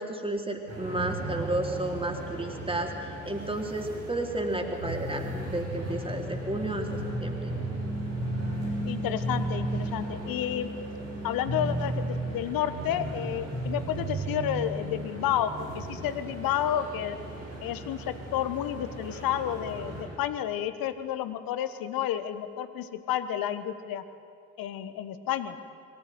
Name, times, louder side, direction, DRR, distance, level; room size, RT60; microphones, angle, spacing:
voice 1, 0.0-6.9 7.2-7.4, right 1 dB, 15° right, 2 dB, 3.8 m, -32 dB
sound 1, 0.7-20.0, right 1 dB, 90° right, 6.7 m, -35 dB
voice 2, 8.8-10.7 11.2-17.2 17.6-24.0 24.6-25.6, left 10 dB, 60° left, 11 dB, 1.4 m, -31 dB
23.0 x 16.0 x 9.4 m, 2.4 s
figure-of-eight pair, 45°, 38 cm